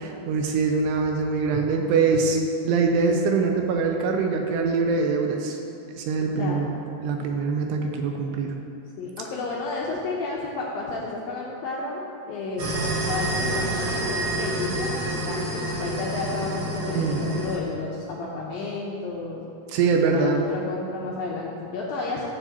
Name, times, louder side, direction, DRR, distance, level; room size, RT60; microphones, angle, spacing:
voice 1, 0.0-2.4 2.6-5.6 5.9-8.5 16.9-17.3 19.7-20.5, right 4 dB, 85° right, 3 dB, 2.6 m, -23 dB
voice 2, 6.3-6.7 9.0-19.5 20.0-22.3, left 3 dB, 80° left, -4 dB, 2.1 m, -32 dB
sound 1, 12.6-17.6, right 1 dB, 60° right, 2.3 m, -28 dB
15.0 x 7.3 x 2.9 m, 2.7 s
omnidirectional pair, 5.1 m